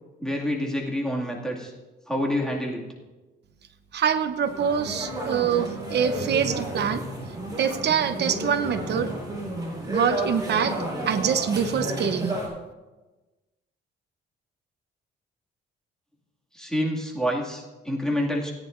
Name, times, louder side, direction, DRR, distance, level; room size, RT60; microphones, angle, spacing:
voice 1, 0.2-1.7 2.1-2.8 16.5-18.5, equal, 5° left, -2 dB, 2.3 m, -27 dB
voice 2, 3.9-7.0 7.6-9.1 9.9-10.8 11.1-12.3, right 7 dB, 60° right, 10 dB, 0.9 m, -24 dB
sound 1, 4.5-12.5, right 1 dB, 20° right, 4.5 m, -32 dB
18.0 x 9.9 x 2.6 m, 1.1 s
cardioid pair, 90°, 20 cm